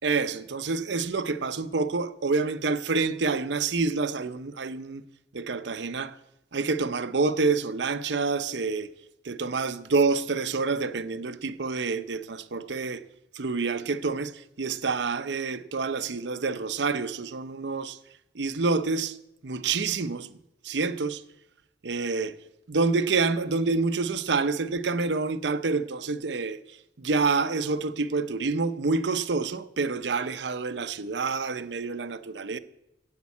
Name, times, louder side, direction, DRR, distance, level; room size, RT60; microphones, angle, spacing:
voice 1, 0.0-5.0 5.3-6.2 6.5-8.9 9.2-13.0 13.3-18.0 18.3-19.2 19.4-20.4 20.6-21.2 21.8-22.4 22.7-32.6, right 4 dB, 75° right, 0.7 m, -27 dB
10.5 x 8.2 x 8.4 m
head